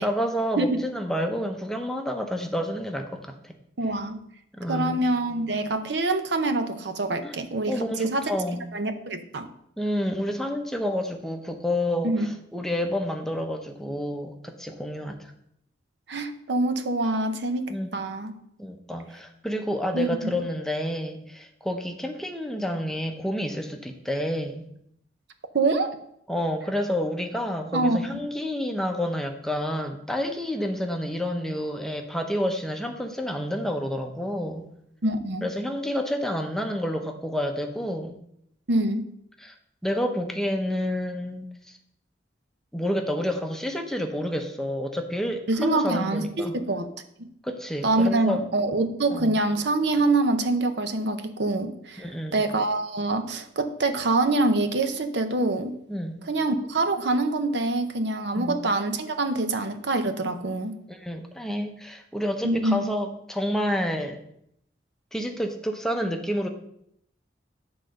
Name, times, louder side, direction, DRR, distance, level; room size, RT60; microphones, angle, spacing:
voice 1, 0.0-3.5 4.6-5.0 7.2-7.3 7.7-8.6 9.8-15.3 17.7-17.9 18.6-24.6 26.3-34.6 35.4-38.1 39.4-39.5 39.8-41.5 42.7-46.5 47.4-48.4 49.1-49.4 52.0-52.4 55.9-56.2 58.3-58.6 60.9-64.2 65.1-66.5, equal, ahead, 3 dB, 0.7 m, -29 dB
voice 2, 3.8-4.2 4.7-8.3 8.7-9.5 12.0-12.3 16.1-18.3 19.9-20.3 25.5-25.9 27.7-28.0 35.0-35.5 38.7-39.0 45.5-46.9 47.2-47.3 47.8-52.1 52.3-55.7 56.2-60.8 62.4-62.8, right 2 dB, 65° right, 8 dB, 0.7 m, -25 dB
9.9 x 3.9 x 6.4 m, 0.73 s
head